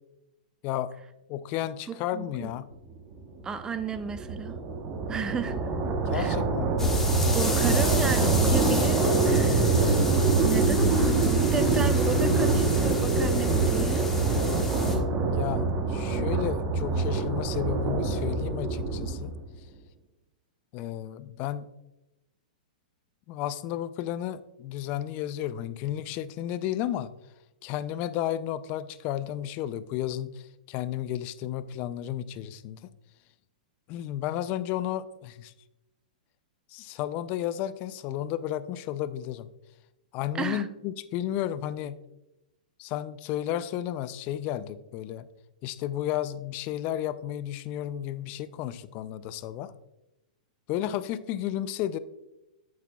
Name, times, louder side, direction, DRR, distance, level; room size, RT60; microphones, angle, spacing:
voice 1, 0.6-1.0 1.3-2.7 6.1-6.9 15.3-19.3 20.7-21.7 23.3-27.1 27.6-32.8 33.9-35.5 36.7-39.5 40.1-42.0 42.8-45.3 45.6-49.7 50.7-52.0, left 12 dB, 35° left, 15 dB, 0.4 m, -32 dB
voice 2, 1.9-2.5 3.4-4.6 5.1-5.6 6.1-6.4 7.3-10.0 10.4-14.7 40.3-40.7, right 6 dB, 15° right, 11 dB, 0.5 m, -33 dB
sound 1, 3.2-19.5, right 3 dB, 30° right, 1.0 m, -25 dB
sound 2, 6.8-15.0, left 2 dB, 10° left, 1.4 m, -31 dB
8.6 x 8.1 x 2.3 m, 0.94 s
hypercardioid pair, 135°, 5 cm